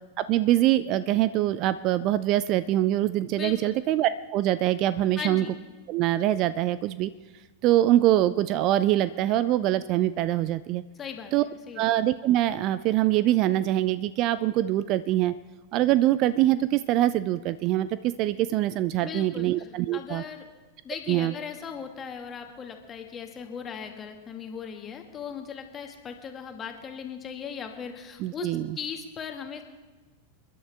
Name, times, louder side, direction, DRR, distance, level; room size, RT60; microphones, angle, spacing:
voice 1, 0.2-5.5 5.9-7.1 7.6-10.8 11.3-11.4 11.8-15.3 15.7-20.2 21.1-21.3 28.2-28.8, right 14 dB, 40° right, 16 dB, 0.4 m, -24 dB
voice 2, 3.4-3.8 5.2-5.6 11.0-11.3 11.7-11.9 19.0-19.5 19.9-20.4 20.8-28.5 28.8-29.6, left 7 dB, 25° left, 4 dB, 1.9 m, -38 dB
28.5 x 11.0 x 3.5 m, 1.2 s
figure-of-eight pair, 90°, 0 cm